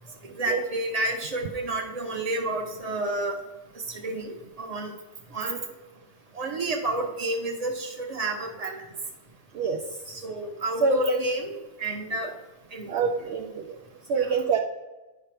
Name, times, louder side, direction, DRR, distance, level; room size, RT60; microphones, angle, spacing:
voice 1, 0.3-3.4 3.9-4.9 5.3-5.7 6.3-8.8 10.1-12.3 12.7-13.1 14.2-14.3, right 2 dB, 30° right, 2 dB, 1.1 m, -30 dB
voice 2, 9.5-10.0 10.8-11.2 12.2-12.3 12.9-13.8 14.1-14.6, right 5 dB, 65° right, 2 dB, 0.8 m, -26 dB
10.0 x 5.5 x 3.3 m, 1.1 s
omnidirectional pair, 1.3 m